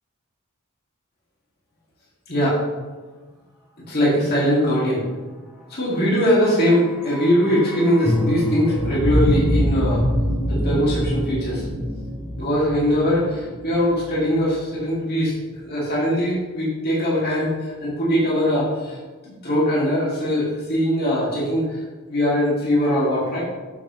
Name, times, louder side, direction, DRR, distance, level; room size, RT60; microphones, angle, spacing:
voice 1, 3.9-5.0 5.8-10.0 10.5-11.6 12.4-15.3 15.6-17.5 17.8-19.0 19.2-21.7 22.1-23.4, equal, 50° left, -7 dB, 2.3 m, -21 dB
sound 1, 6.3-14.5 14.7-14.8, equal, ahead, 1.5 m, -25 dB
6.9 x 6.8 x 3.1 m, 1.3 s
head